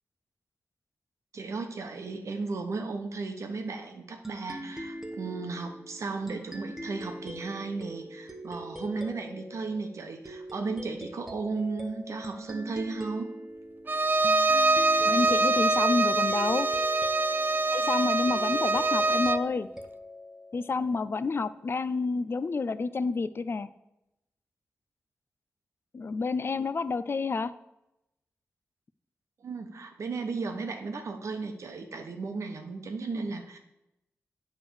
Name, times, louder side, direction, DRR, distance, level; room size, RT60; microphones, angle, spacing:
voice 1, 1.3-13.3 29.4-33.6, right 4 dB, 75° right, 5 dB, 1.0 m, -35 dB
sound 1, 4.2-21.4, equal, 10° right, 1.1 m, -43 dB
Bowed string instrument, 13.9-19.5, right 2 dB, 40° right, 0.4 m, -24 dB
voice 2, 15.0-16.7 17.7-19.7 20.5-23.7 25.9-27.5, left 4 dB, 50° left, 14 dB, 0.4 m, -29 dB
8.1 x 3.4 x 6.3 m, 0.88 s
cardioid pair, 55°, 5 cm